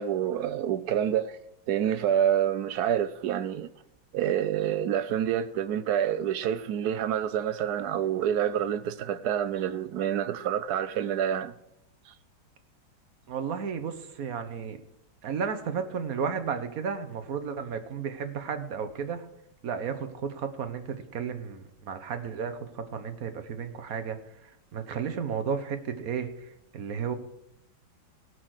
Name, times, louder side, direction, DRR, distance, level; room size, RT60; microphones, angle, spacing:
voice 1, 0.0-1.4 1.7-3.7 4.1-11.5 12.1-12.2, right 9 dB, 70° right, 1.0 m, -27 dB
voice 2, 13.3-14.8 15.2-19.2 19.6-24.2 24.7-26.3 26.7-27.2, right 6 dB, 55° right, 1.4 m, -33 dB
17.5 x 6.0 x 6.4 m
omnidirectional pair, 2.1 m